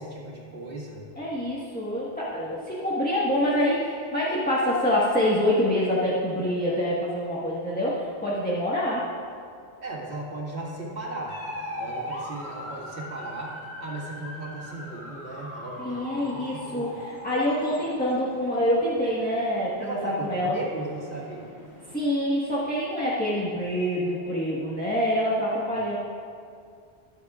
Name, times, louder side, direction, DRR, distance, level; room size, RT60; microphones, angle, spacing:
voice 1, 0.0-1.1 9.8-11.4 11.8-17.0 19.8-21.4, right 2 dB, 85° right, -5 dB, 2.2 m, -36 dB
voice 2, 1.2-9.1 15.8-20.6 21.9-26.0, equal, 10° left, -7 dB, 1.4 m, -26 dB
sound 1, 11.3-22.0, equal, 80° left, 2.7 m, -41 dB
20.5 x 8.0 x 2.4 m, 2.3 s
omnidirectional pair, 1.1 m